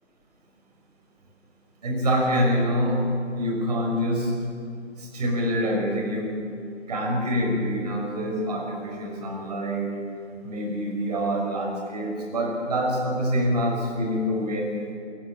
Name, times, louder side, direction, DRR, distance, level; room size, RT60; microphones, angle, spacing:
voice 1, 1.8-3.1 3.3-4.3 5.0-6.3 6.9-9.9 10.4-14.8, equal, 35° right, 0 dB, 5.6 m, -26 dB
28.5 x 14.5 x 7.3 m, 2.5 s
figure-of-eight pair, 160°, 36 cm